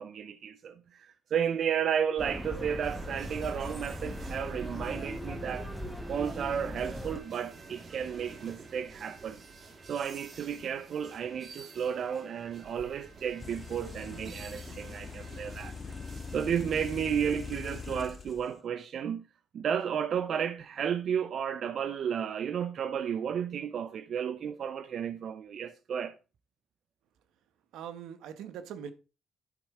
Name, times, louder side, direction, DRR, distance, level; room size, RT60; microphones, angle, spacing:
voice 1, 0.0-5.7 6.1-9.4 9.9-15.7 16.3-19.3 19.5-26.1, right 8 dB, 60° right, 0.7 m, -33 dB
sound 1, 2.2-7.2, equal, ahead, 1.6 m, -39 dB
sound 2, 2.8-18.1, right 4 dB, 45° right, 1.9 m, -50 dB
sound 3, 13.4-18.4, left 5 dB, 35° left, 0.6 m, -42 dB
voice 2, 27.7-28.9, right 8 dB, 85° right, 1.2 m, -41 dB
11.5 x 4.2 x 4.9 m
cardioid pair, 90°, 0 cm